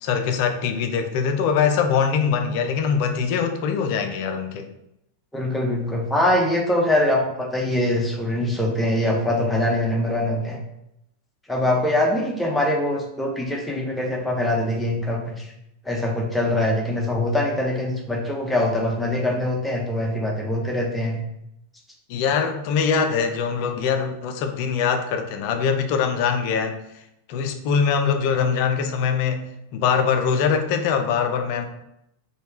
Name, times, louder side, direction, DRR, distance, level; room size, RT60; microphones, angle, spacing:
voice 1, 0.0-4.7 22.1-26.8 27.3-31.7, left 6 dB, 45° left, 6 dB, 0.4 m, -23 dB
voice 2, 5.3-10.6 11.5-15.5 15.8-21.2, left 1 dB, 5° left, -1 dB, 0.7 m, -23 dB
3.1 x 2.3 x 3.0 m, 0.82 s
figure-of-eight pair, 90°, 0 cm